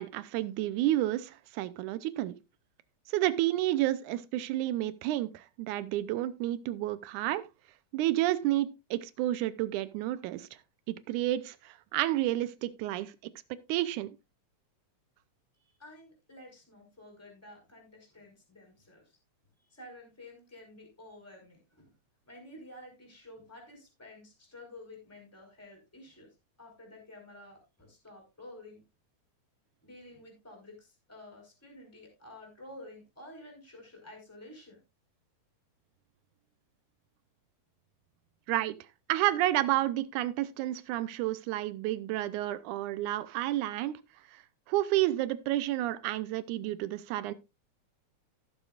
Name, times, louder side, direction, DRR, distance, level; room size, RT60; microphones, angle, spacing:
voice 1, 0.0-2.4 3.1-7.5 7.9-10.5 10.9-13.3 13.7-14.1 38.5-38.8 39.1-44.0 44.7-47.3, right 14 dB, 85° right, 2.2 m, -30 dB
voice 2, 15.6-19.0 19.7-21.9 22.3-26.3 26.6-28.8 29.8-34.8, left 1 dB, 5° left, 4.1 m, -51 dB
16.5 x 7.1 x 2.4 m
omnidirectional pair, 3.4 m